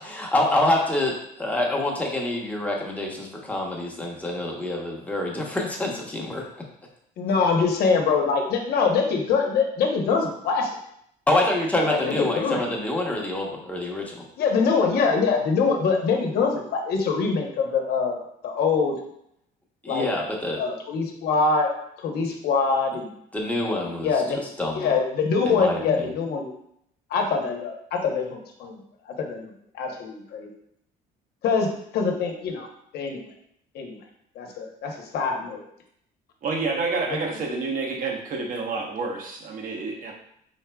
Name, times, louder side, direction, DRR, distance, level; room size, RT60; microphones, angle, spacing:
voice 1, 0.0-6.4 11.3-14.2 19.8-20.6 23.3-24.1 24.6-25.0 25.4-26.1, left 1 dB, 10° left, -2 dB, 1.0 m, -26 dB
voice 2, 7.2-10.7 11.9-12.7 14.4-18.9 19.9-20.1 20.6-21.7 22.0-23.1 23.7-24.4 24.7-26.5 27.1-28.8 29.1-30.5 31.4-32.7 32.9-33.3 33.7-34.0 34.4-35.6 37.1-37.2, left 5 dB, 70° left, 2 dB, 0.9 m, -24 dB
voice 3, 36.4-40.1, right 4 dB, 55° right, 0 dB, 1.0 m, -29 dB
4.7 x 4.2 x 2.3 m, 0.72 s
cardioid pair, 110°, 17 cm